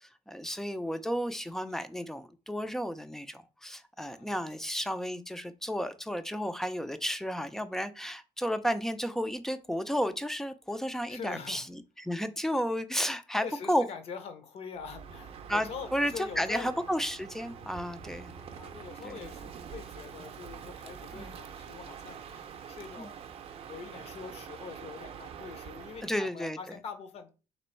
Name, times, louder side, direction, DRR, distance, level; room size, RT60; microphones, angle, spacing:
voice 1, 0.0-13.8 15.5-18.3 19.0-19.3 21.1-21.4 23.0-23.1 26.0-26.6, equal, 5° left, 0.3 m, -32 dB
voice 2, 4.0-4.4 11.1-11.7 13.4-16.8 18.5-23.2 23.7-27.3, left 6 dB, 50° left, 0.7 m, -44 dB
Crow, 14.8-26.2, right 7 dB, 45° right, 0.5 m, -45 dB
3.4 x 3.0 x 4.3 m
cardioid pair, 150°, 13 cm